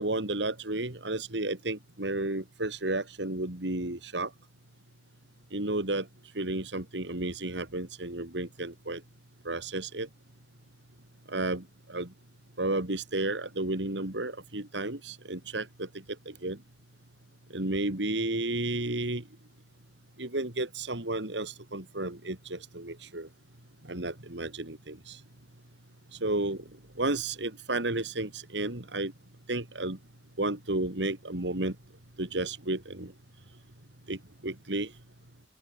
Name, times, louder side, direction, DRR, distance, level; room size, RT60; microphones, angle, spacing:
voice 1, 0.0-4.3 5.5-6.1 6.3-9.0 9.4-10.1 11.3-12.1 12.6-15.9 16.3-16.6 17.5-19.2 20.2-23.3 23.8-25.2 26.1-26.6 27.0-29.1 29.5-30.0 30.4-31.7 32.2-33.1 34.1-34.9, right 2 dB, 85° right, 3.0 m, -32 dB
open air
head